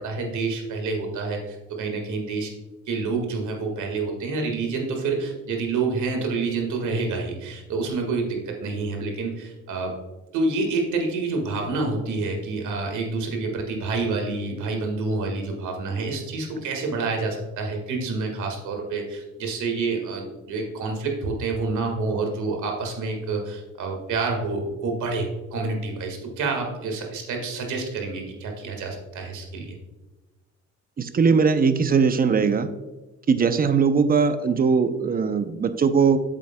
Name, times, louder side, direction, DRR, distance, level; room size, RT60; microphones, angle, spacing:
voice 1, 0.0-2.5 2.9-10.0 10.3-29.7, right 3 dB, 75° right, 2 dB, 1.7 m, -28 dB
voice 2, 31.0-32.7 33.3-36.2, right 5 dB, 30° right, 11 dB, 0.6 m, -20 dB
8.5 x 7.5 x 2.2 m, 1.1 s
cardioid pair, 90°, 30 cm